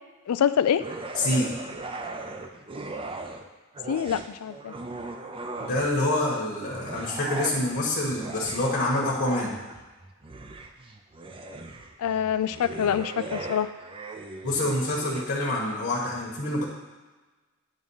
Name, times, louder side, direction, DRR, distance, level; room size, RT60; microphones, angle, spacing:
voice 1, 0.3-0.8 3.9-4.7 12.0-13.7, left 8 dB, 80° left, 13 dB, 0.4 m, -25 dB
sound 1, 0.8-3.5 3.7-6.1 6.6-15.3, right 2 dB, 25° right, 0.5 m, -38 dB
voice 2, 1.1-1.5 5.6-9.5 14.4-16.6, left 1 dB, 50° left, -4 dB, 1.2 m, -26 dB
9.0 x 3.6 x 5.5 m, 1.3 s
head